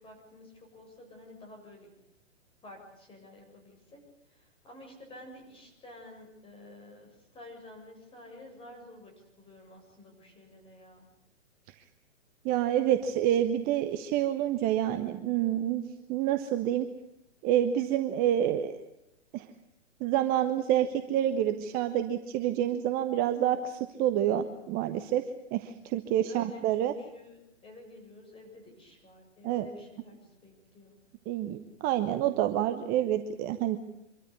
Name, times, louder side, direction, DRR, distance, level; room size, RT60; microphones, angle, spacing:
voice 1, 0.0-1.9 2.6-4.0 4.3-9.1 9.4-11.0 26.3-31.0, left 1 dB, 15° left, 2 dB, 6.9 m, -51 dB
voice 2, 12.4-15.8 16.1-16.9 17.4-18.8 19.3-19.5 20.0-25.2 25.5-26.9 29.4-29.7 31.3-33.8, right 11 dB, 25° right, 8 dB, 1.0 m, -28 dB
25.0 x 14.0 x 9.8 m, 0.88 s
hypercardioid pair, 125°, 37 cm